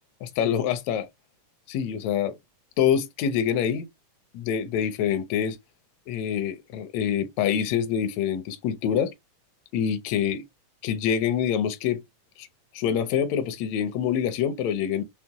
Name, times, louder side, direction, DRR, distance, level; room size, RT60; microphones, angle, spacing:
voice 1, 0.2-1.1 1.7-2.4 2.8-3.9 4.3-5.6 6.1-9.1 9.7-10.4 10.8-12.0 12.4-12.5 12.7-15.0, left 8 dB, 80° left, 1.6 m, -26 dB
5.5 x 2.0 x 2.8 m
omnidirectional pair, 3.5 m